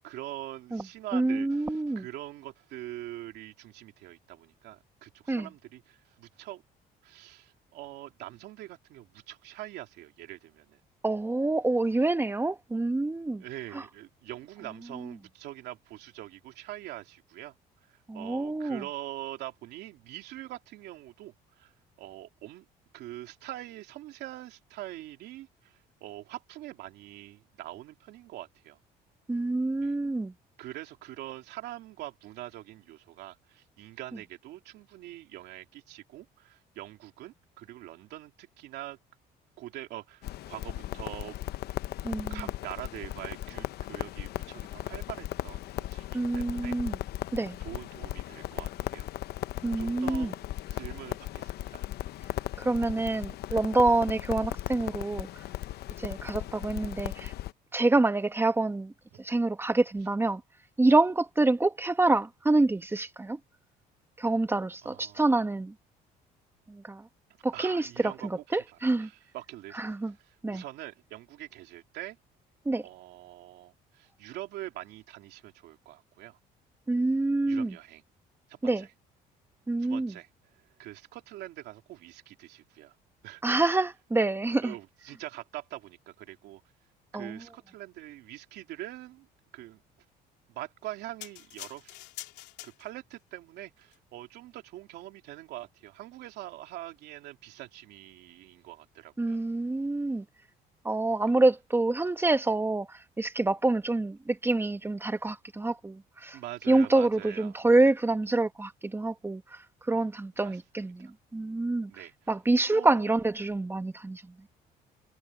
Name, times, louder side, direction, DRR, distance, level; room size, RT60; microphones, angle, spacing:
voice 1, 0.0-6.6 7.0-10.8 11.9-12.1 13.4-17.6 17.9-21.7 22.0-22.6 22.9-28.8 29.8-29.9 30.6-39.0 39.6-41.4 42.3-46.8 47.6-49.1 49.7-51.9 59.1-59.2 64.8-65.2 67.5-72.2 72.8-76.4 77.5-78.0 78.5-78.9 79.8-82.9 83.2-83.4 84.6-86.6 87.1-89.3 89.5-89.8 90.5-92.0 92.6-99.4 106.3-107.6 110.4-111.1 111.9-112.1 112.7-113.2, right 15 dB, 80° right, 3.0 m, -44 dB
voice 2, 1.1-2.1 5.3-5.5 11.0-13.4 13.7-13.8 18.1-18.8 29.3-30.3 42.0-42.4 46.1-47.0 47.3-47.6 49.6-50.3 52.6-55.3 56.0-57.3 57.7-58.9 59.2-60.4 60.8-63.4 64.2-65.7 66.7-67.0 67.4-69.1 69.7-70.1 70.4-70.6 72.6-72.8 76.9-77.7 78.6-78.9 79.7-80.1 83.4-84.7 87.1-87.4 99.2-100.2 100.8-106.4 106.7-109.6 109.9-111.9 112.3-114.3, right 2 dB, 15° right, 1.2 m, -27 dB
Crackle, 40.2-57.5, left 14 dB, 70° left, 0.8 m, -37 dB
sound 1, 91.2-93.2 93.8-94.0, left 16 dB, 90° left, 3.2 m, -45 dB
cardioid pair, 110°, 17 cm